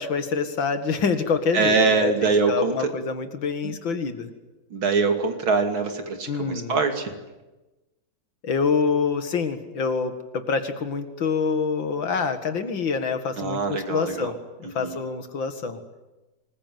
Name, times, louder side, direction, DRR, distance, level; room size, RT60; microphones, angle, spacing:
voice 1, 0.0-2.1 2.5-4.3 6.3-6.8 8.4-14.3 14.6-15.8, left 5 dB, 70° left, 8 dB, 2.7 m, -26 dB
voice 2, 1.5-2.9 3.6-3.7 4.7-7.1 13.4-14.3 14.6-15.0, right 4 dB, 80° right, 5 dB, 3.4 m, -23 dB
25.0 x 21.0 x 9.5 m, 1.1 s
omnidirectional pair, 2.2 m